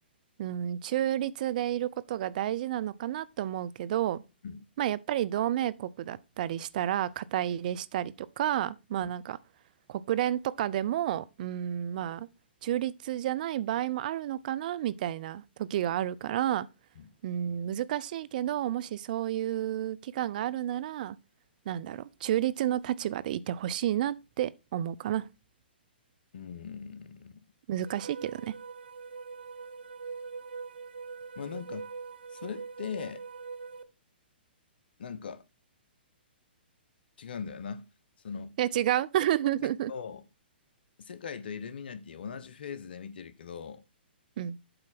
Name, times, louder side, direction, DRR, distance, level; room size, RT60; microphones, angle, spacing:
voice 1, 0.4-4.2 4.8-9.4 9.9-12.3 12.6-16.7 17.2-21.2 21.7-25.3 27.7-28.5 38.6-39.9 44.4-44.6, right 12 dB, 50° right, 0.5 m, -31 dB
voice 2, 26.3-27.3 31.4-31.9 32.3-33.2 35.0-35.4 37.2-37.8 38.2-38.5 39.9-40.2 41.0-43.8, left 6 dB, 65° left, 1.0 m, -40 dB
sound 1, 27.8-33.8, right 5 dB, 75° right, 0.9 m, -42 dB
7.9 x 4.4 x 5.9 m
hypercardioid pair, 130°, 6 cm